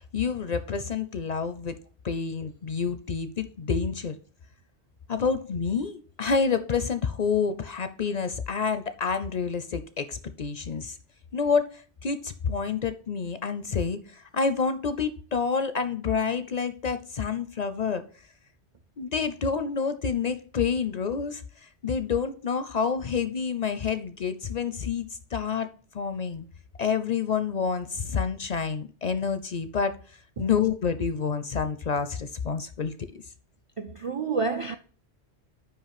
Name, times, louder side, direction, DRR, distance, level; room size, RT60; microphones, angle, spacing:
voice 1, 0.1-1.8 2.0-4.2 5.1-11.0 11.3-18.0 19.0-25.7 25.9-26.5 26.8-30.0 30.4-33.2, left 6 dB, 50° left, 0.5 m, -28 dB
voice 2, 33.8-34.7, right 4 dB, 60° right, 0.3 m, -29 dB
5.6 x 5.1 x 5.8 m
omnidirectional pair, 1.1 m